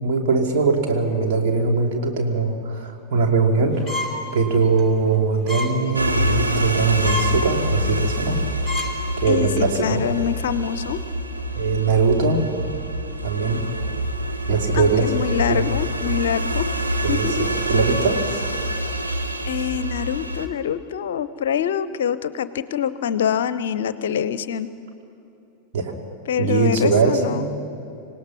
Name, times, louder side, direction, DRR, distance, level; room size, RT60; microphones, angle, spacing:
voice 1, 0.0-4.1 4.3-8.4 9.2-10.0 11.5-12.5 13.2-13.6 14.5-15.1 15.5-15.6 17.0-18.3 25.7-25.9 26.4-27.5, right 4 dB, 50° right, 1 dB, 3.0 m, -21 dB
sound 1, 3.9-4.2 4.7-4.8 5.5-5.7 6.1-6.4 6.8-6.9 7.0-7.3 7.8-8.0 8.4-8.5 8.6-8.9 9.4-9.6, left 2 dB, 5° right, 2.9 m, -28 dB
sound 2, 5.9-20.5, equal, 85° right, 1.3 m, -26 dB
voice 2, 9.3-11.0 14.7-16.7 17.1-17.5 19.4-24.7 26.3-27.5, left 9 dB, 60° left, 15 dB, 0.6 m, -25 dB
26.5 x 17.5 x 5.8 m, 2.8 s
figure-of-eight pair, 90°, 0 cm